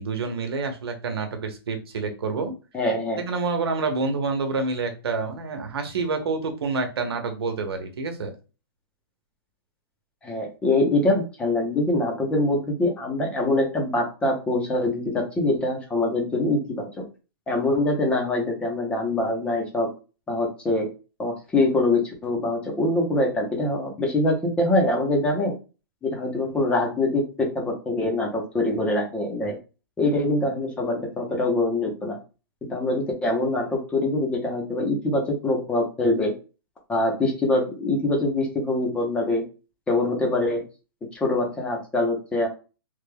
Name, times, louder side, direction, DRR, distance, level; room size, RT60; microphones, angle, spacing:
voice 1, 0.0-2.5 3.2-8.3, right 4 dB, 85° right, 6 dB, 1.0 m, -28 dB
voice 2, 2.7-3.2 10.2-17.0 17.5-19.9 20.3-20.9 21.2-25.5 26.0-29.6 30.0-32.2 32.7-36.3 36.9-39.4 39.9-40.6 41.1-42.5, left 2 dB, 10° left, 1 dB, 0.7 m, -24 dB
3.4 x 2.3 x 3.3 m, 0.32 s
hypercardioid pair, 165°, 13 cm